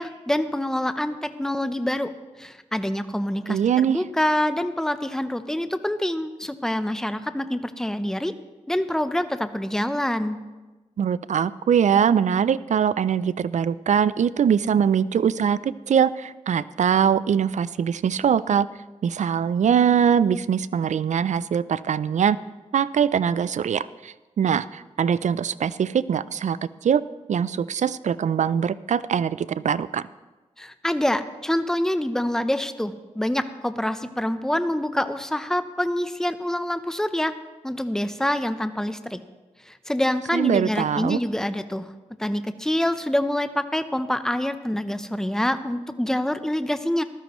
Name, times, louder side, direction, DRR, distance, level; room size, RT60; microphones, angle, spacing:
voice 1, 0.0-2.1 2.4-3.6 3.9-8.3 8.7-10.4 30.6-37.3 37.6-39.2 39.7-41.9 42.2-47.0, left 1 dB, 5° left, 11 dB, 0.7 m, -26 dB
voice 2, 3.5-4.0 11.0-18.7 19.0-22.4 22.7-27.0 27.3-30.1 40.3-41.2, right 8 dB, 70° right, 17 dB, 0.4 m, -22 dB
14.5 x 12.5 x 3.1 m, 1.2 s
cardioid pair, 50°, 13 cm